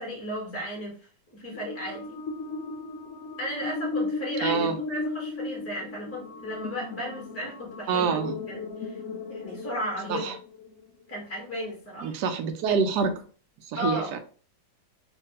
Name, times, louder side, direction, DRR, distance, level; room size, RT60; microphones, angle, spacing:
voice 1, 0.0-2.2 3.4-8.1 8.5-9.0 9.3-10.3 11.1-12.2 13.8-14.2, equal, 10° left, -3 dB, 0.9 m, -35 dB
sound 1, 1.5-10.9, left 3 dB, 75° left, 0.7 m, -35 dB
voice 2, 4.4-4.8 7.9-8.3 10.1-10.3 12.0-13.1 13.7-14.2, right 5 dB, 70° right, 7 dB, 1.0 m, -26 dB
3.2 x 2.2 x 2.8 m, 0.39 s
omnidirectional pair, 2.0 m